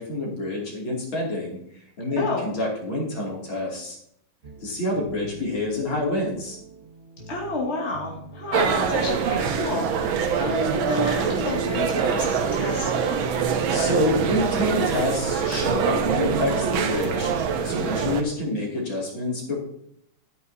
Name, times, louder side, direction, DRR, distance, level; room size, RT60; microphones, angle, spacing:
voice 1, 0.0-1.6 2.0-4.0 4.6-6.6 13.7-17.3 17.6-19.6, left 1 dB, 75° left, -3 dB, 3.5 m, -27 dB
voice 2, 2.2-2.5 7.3-13.5, left 2 dB, 30° left, -3 dB, 2.6 m, -30 dB
sound 1, 4.4-17.9, right 2 dB, 35° right, 1.2 m, -43 dB
sound 2, 8.5-18.2, right 6 dB, 80° right, 1.7 m, -24 dB
12.5 x 9.6 x 2.8 m, 0.71 s
omnidirectional pair, 2.2 m